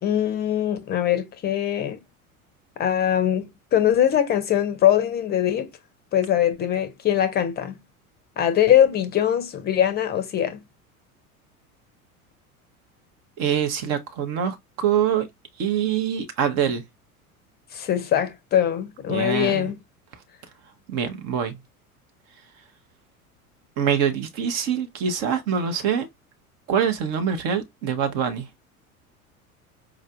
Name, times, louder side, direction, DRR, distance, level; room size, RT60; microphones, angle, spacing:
voice 1, 0.0-2.0 2.8-5.7 6.1-7.8 8.4-10.6 17.7-19.8, left 10 dB, 25° left, 0.6 m, -22 dB
voice 2, 13.4-15.3 15.6-16.8 19.1-19.7 20.9-21.6 23.8-26.1 26.7-28.5, right 8 dB, 40° right, 0.6 m, -24 dB
4.6 x 2.4 x 2.3 m
figure-of-eight pair, 75°, 44 cm